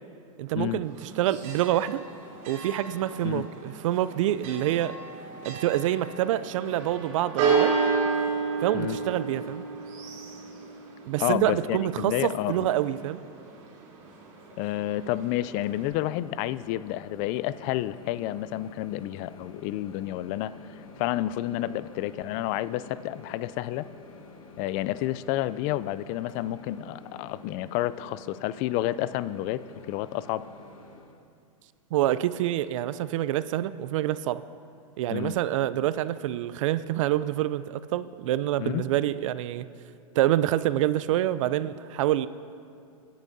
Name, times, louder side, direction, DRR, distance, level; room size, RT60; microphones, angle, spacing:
voice 1, 0.4-2.0 2.5-5.0 5.4-7.7 8.6-9.6 11.1-13.2 31.9-34.4 35.0-39.7 40.1-42.3, right 13 dB, 65° right, 15 dB, 0.5 m, -27 dB
Church bell, 0.8-15.9, right 5 dB, 50° right, 3.3 m, -32 dB
voice 2, 11.2-12.7 14.6-20.5 21.0-23.9 24.6-29.6 29.9-30.4 35.1-35.3 38.6-38.8, left 14 dB, 45° left, 17 dB, 0.4 m, -30 dB
Microwave oven, 14.9-31.1, left 3 dB, 85° left, 1.5 m, -49 dB
21.5 x 10.5 x 2.7 m, 2.4 s
hypercardioid pair, 105°, 17 cm